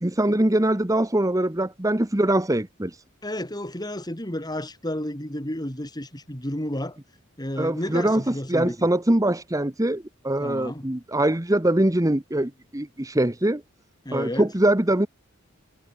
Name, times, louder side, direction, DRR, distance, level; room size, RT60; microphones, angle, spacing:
voice 1, 0.0-3.0 7.6-13.6 14.1-15.1, right 1 dB, 15° right, 1.1 m, -23 dB
voice 2, 3.2-7.0 7.4-8.9 10.4-10.9 14.0-14.5, left 1 dB, 20° left, 4.6 m, -31 dB
head